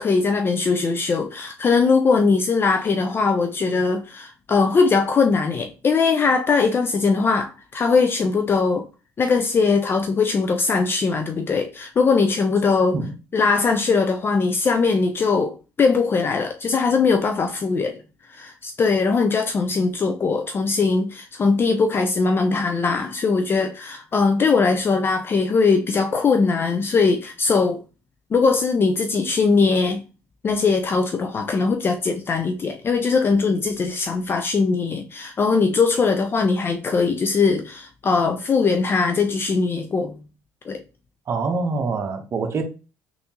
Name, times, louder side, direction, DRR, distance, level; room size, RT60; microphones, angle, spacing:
voice 1, 0.0-8.9 9.2-13.0 13.3-18.0 18.3-27.8 28.3-30.0 30.4-40.1 40.7-40.8, left 4 dB, 30° left, 0.4 m, -20 dB
voice 2, 41.3-42.6, right 4 dB, 40° right, 0.8 m, -25 dB
3.5 x 2.7 x 2.8 m
supercardioid pair, 90°, 7 cm